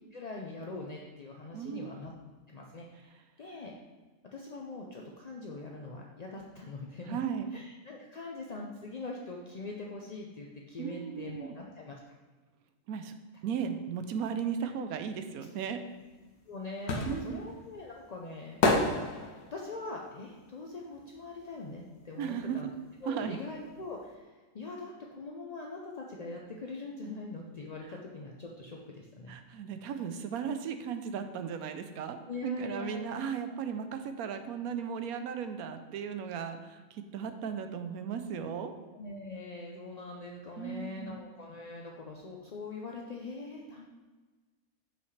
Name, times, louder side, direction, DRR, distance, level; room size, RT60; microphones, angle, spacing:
voice 1, 0.1-2.1 2.5-3.7 4.2-7.2 7.5-12.0 16.5-19.1 19.5-22.7 23.0-29.4 32.3-33.2 37.4-37.6 38.9-43.9, left 3 dB, 55° left, -1 dB, 0.4 m, -42 dB
voice 2, 1.5-2.0 7.1-7.5 10.8-11.5 12.9-13.1 13.4-15.8 17.0-17.4 22.2-22.6 23.1-23.4 29.3-38.7 40.6-41.2, right 7 dB, 85° right, 8 dB, 1.1 m, -36 dB
sound 1, 16.0-21.9 22.1-23.7 24.0-24.1, left 3 dB, 90° left, 1.4 m, -32 dB
7.2 x 5.7 x 3.2 m, 1.3 s
omnidirectional pair, 1.5 m